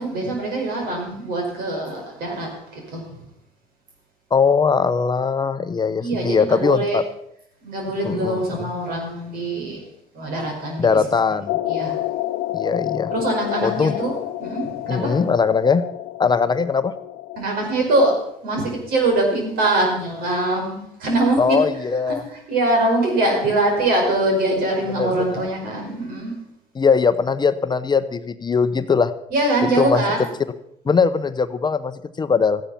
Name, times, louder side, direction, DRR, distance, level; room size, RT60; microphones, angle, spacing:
voice 1, 0.0-3.2 6.0-7.0 7.6-9.8 10.1-10.9 11.7-12.0 13.1-14.1 14.4-15.2 17.4-18.1 18.4-21.8 22.1-26.4 29.3-30.3, right 2 dB, 70° right, 1 dB, 5.3 m, -23 dB
voice 2, 4.3-7.0 8.0-8.4 10.8-11.6 12.5-13.1 13.6-13.9 14.9-15.8 16.2-16.9 21.4-22.2 25.0-25.4 26.8-29.1 29.8-30.0 30.9-32.6, left 5 dB, 25° left, 11 dB, 0.7 m, -20 dB
sound 1, 11.5-17.4, left 15 dB, 70° left, 0.5 m, -29 dB
14.5 x 9.8 x 5.7 m, 0.74 s
supercardioid pair, 85°, 16 cm